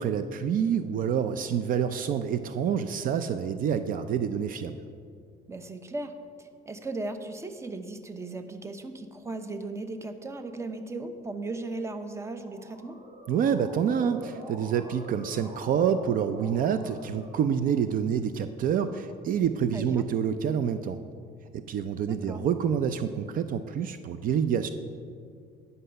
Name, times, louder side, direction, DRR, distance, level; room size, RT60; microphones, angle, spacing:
voice 1, 0.0-4.8 13.3-21.0 21.5-24.7, right 8 dB, 55° right, 10 dB, 0.5 m, -27 dB
voice 2, 5.5-6.1 6.4-13.0 19.7-20.1 22.1-22.4, right 2 dB, 15° right, 8 dB, 0.7 m, -37 dB
Motor vehicle (road) / Siren, 12.1-18.0, right 1 dB, 40° right, 2.0 m, -46 dB
9.9 x 5.5 x 6.7 m, 2.2 s
cardioid pair, 110°, 17 cm